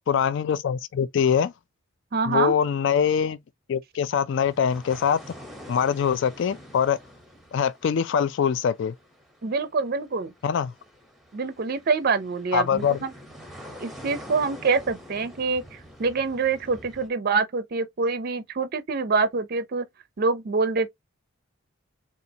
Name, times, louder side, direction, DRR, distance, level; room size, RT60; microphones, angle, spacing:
voice 1, 0.1-1.5 2.3-3.4 3.7-5.2 5.7-7.0 7.5-8.9 10.4-10.7 12.5-13.0, left 7 dB, 60° left, 0.3 m, -23 dB
voice 2, 2.1-2.5 9.4-10.3 11.3-13.1 13.8-19.9 20.2-20.9, right 4 dB, 45° right, 0.5 m, -25 dB
sound 1, 4.4-17.1, equal, ahead, 0.8 m, -46 dB
4.0 x 2.4 x 2.7 m
head